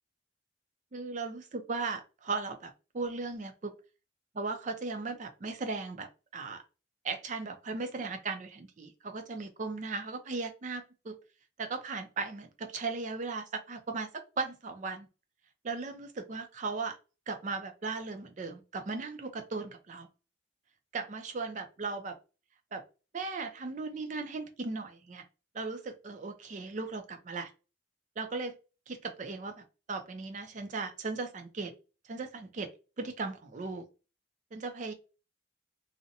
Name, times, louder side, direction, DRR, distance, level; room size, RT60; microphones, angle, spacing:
voice 1, 0.9-3.7 4.3-6.6 7.0-11.2 11.6-14.1 14.4-15.1 15.6-17.0 17.3-20.1 20.9-22.1 22.7-22.8 23.1-25.2 25.5-27.5 28.2-28.5 28.9-31.7 32.0-32.7 33.0-33.8 34.5-34.9, right 4 dB, 40° right, 7 dB, 0.4 m, -37 dB
2.6 x 2.0 x 2.7 m, 0.32 s
head